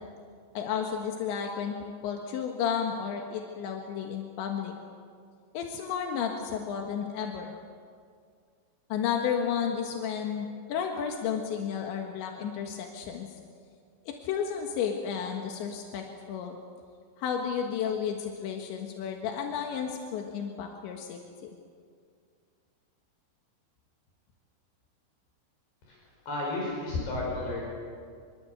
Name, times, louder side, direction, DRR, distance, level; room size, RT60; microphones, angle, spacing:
voice 1, 0.6-4.7 5.5-7.5 8.9-13.3 14.1-16.6 17.2-21.2, left 7 dB, 90° left, 2 dB, 3.9 m, -32 dB
voice 2, 26.3-27.6, left 2 dB, 70° left, -3 dB, 7.3 m, -32 dB
25.5 x 22.5 x 8.0 m, 2.1 s
omnidirectional pair, 5.1 m